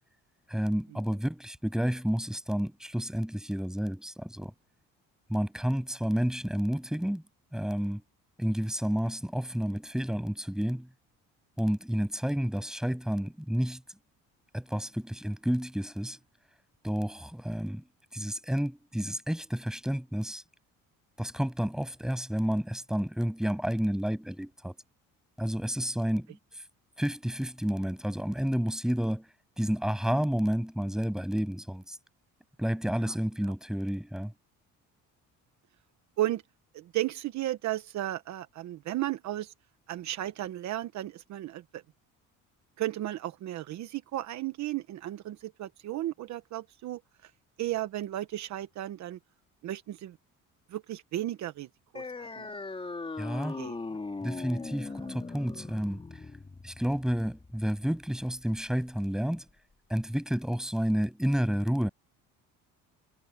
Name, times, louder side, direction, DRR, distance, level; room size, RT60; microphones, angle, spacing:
voice 1, 0.5-4.5 5.3-7.2 7.5-8.0 8.4-10.9 11.6-13.8 14.5-16.2 16.8-17.8 18.1-20.4 21.2-24.8 25.4-26.4 27.0-29.3 29.6-32.0 32.6-34.3 53.2-53.6 54.2-56.0 56.6-59.4 59.9-61.9, equal, ahead, 7.3 m, -30 dB
voice 2, 36.7-39.5 39.9-41.8 42.8-47.0 47.6-49.2 49.6-50.2 50.7-51.7 51.9-52.5 53.6-53.8 55.0-55.1, right 14 dB, 60° right, 1.1 m, -34 dB
sound 1, 51.9-59.0, left 3 dB, 15° left, 3.5 m, -40 dB
cardioid pair, 135°, 32 cm